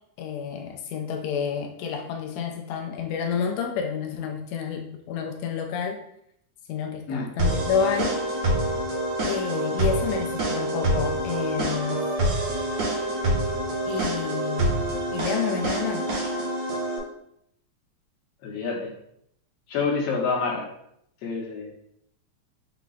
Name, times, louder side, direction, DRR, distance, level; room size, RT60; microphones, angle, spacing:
voice 1, 0.2-6.0 6.7-8.2 9.2-12.0 13.8-16.1, left 6 dB, 90° left, 3 dB, 1.5 m, -29 dB
sound 1, 7.4-17.0, right 1 dB, 65° right, 2.1 m, -26 dB
voice 2, 18.4-18.9 19.7-20.7 21.2-21.7, left 4 dB, 60° left, -2 dB, 1.9 m, -27 dB
5.6 x 2.4 x 3.9 m, 0.73 s
omnidirectional pair, 3.7 m